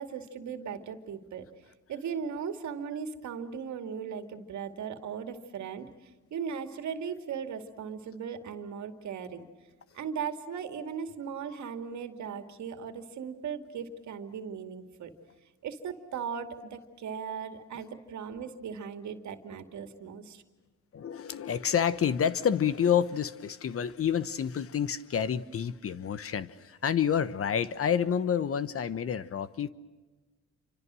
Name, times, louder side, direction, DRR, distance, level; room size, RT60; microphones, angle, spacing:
voice 1, 0.0-1.5 1.9-9.4 9.9-15.1 15.6-20.4, right 7 dB, 70° right, 7 dB, 2.5 m, -38 dB
voice 2, 20.9-29.7, left 8 dB, 50° left, 15 dB, 1.1 m, -28 dB
28.5 x 25.5 x 6.3 m, 1.3 s
cardioid pair, 90°, 30 cm